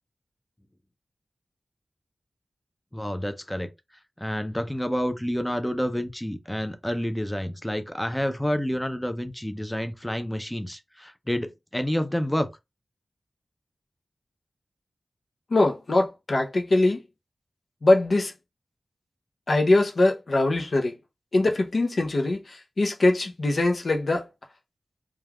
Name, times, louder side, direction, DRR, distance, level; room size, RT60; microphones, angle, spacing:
voice 1, 2.9-3.7 4.2-12.5, equal, 10° left, 0.5 m, -29 dB
voice 2, 15.5-17.0 17.8-18.3 19.5-20.9 21.3-24.2, left 2 dB, 70° left, 0.6 m, -22 dB
3.2 x 2.2 x 2.3 m
cardioid pair, 55°, 0 cm